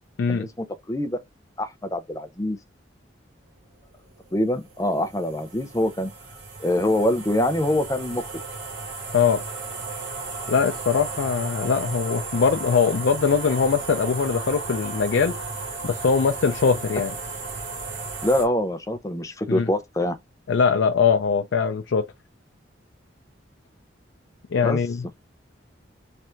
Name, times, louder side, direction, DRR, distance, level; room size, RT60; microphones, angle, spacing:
voice 1, 0.3-1.2 1.6-2.6 4.3-6.1 6.6-8.3 18.2-20.2 24.6-24.8, left 1 dB, 15° left, 0.5 m, -24 dB
sound 1, 4.0-18.5, right 3 dB, 75° right, 1.9 m, -34 dB
voice 2, 10.5-15.3 15.8-17.1 19.5-19.7 20.5-22.0 24.5-25.1, left 6 dB, 80° left, 0.4 m, -22 dB
3.3 x 2.5 x 4.3 m
head